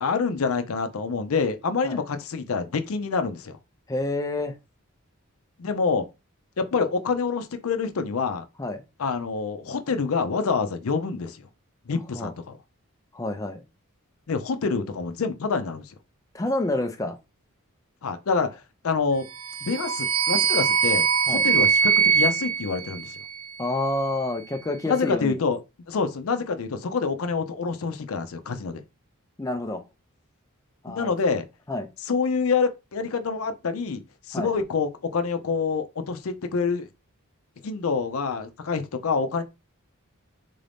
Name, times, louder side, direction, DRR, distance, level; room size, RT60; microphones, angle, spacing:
voice 1, 0.0-3.6 5.6-6.1 6.6-8.4 9.0-11.5 11.9-12.6 14.3-15.9 18.0-19.3 19.6-23.2 24.9-25.6 25.9-28.8 31.0-31.4 32.1-34.0 34.3-36.9 37.6-39.4, left 5 dB, 70° left, 0.5 m, -27 dB
voice 2, 3.9-4.6 8.6-8.8 12.1-12.3 13.1-13.6 16.3-17.2 21.3-21.4 23.6-25.4 29.4-29.8 30.8-31.1 31.7-31.9 34.3-34.5, left 2 dB, 15° left, 0.4 m, -28 dB
sound 1, 19.3-23.6, right 6 dB, 85° right, 0.7 m, -23 dB
3.8 x 2.6 x 3.4 m
head